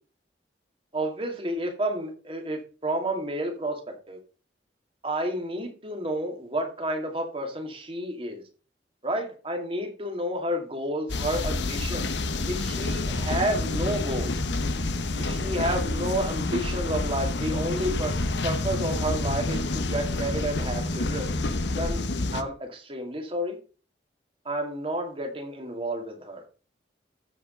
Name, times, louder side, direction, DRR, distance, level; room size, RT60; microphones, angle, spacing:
voice 1, 0.9-4.2 5.0-8.4 9.0-12.1 12.5-14.4 15.2-21.3 21.7-22.0 22.3-23.6 24.4-26.4, right 1 dB, 30° right, 3 dB, 2.3 m, -30 dB
sound 1, 11.1-22.4, left 2 dB, 75° left, 1.0 m, -28 dB
14.0 x 5.1 x 5.1 m, 0.37 s
head